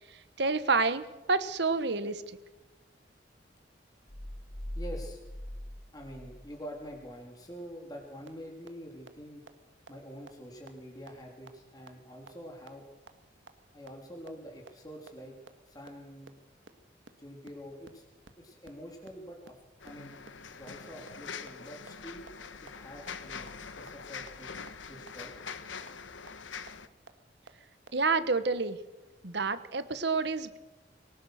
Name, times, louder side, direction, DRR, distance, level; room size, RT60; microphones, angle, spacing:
voice 1, 0.4-2.2 27.9-28.8 29.2-30.6, right 4 dB, 65° right, 13 dB, 1.3 m, -28 dB
sound 1, 4.1-7.1, left 1 dB, 60° left, 3.0 m, -41 dB
voice 2, 4.7-5.2 5.9-9.4 9.9-12.9 13.7-15.4 15.7-16.3 17.2-18.0 18.4-19.6 19.8-22.3 22.6-24.5 24.9-25.3, equal, 20° left, 0 dB, 3.4 m, -46 dB
sound 2, 8.3-8.4 8.7-8.8 9.1-9.2 9.5-9.6 9.9-10.0 10.3-10.4 10.7-10.8 11.1-11.2 11.5-11.6 11.9-12.0 12.3-12.4 12.7-12.8 13.1-13.2 13.5-13.6 13.9-14.0 14.3-14.4 14.7-14.8 15.1-15.2 15.5-15.6 15.9-16.0 16.3-16.4 16.7-16.8 17.1-17.2 17.4-17.5 17.8-17.9 18.2-18.3 18.6-18.7 19.0-19.1 19.4-19.5 19.9-20.0 20.3-20.4 20.7-20.8 21.1-21.2 21.5-21.6 21.9-22.0 22.3-22.4 22.7-22.8 23.1-23.2 23.5-23.6 23.9-24.0 24.3-24.4 24.7-24.8 25.1-25.2 25.5-25.6 25.9-26.0 26.3-26.4 26.7-26.8 27.1-27.2 27.5-27.6 27.9-28.0, right 3 dB, 85° right, 1.7 m, -48 dB
sound 3, 19.8-26.9, left 6 dB, 90° left, 1.2 m, -44 dB
23.5 x 18.5 x 6.5 m, 1.1 s
head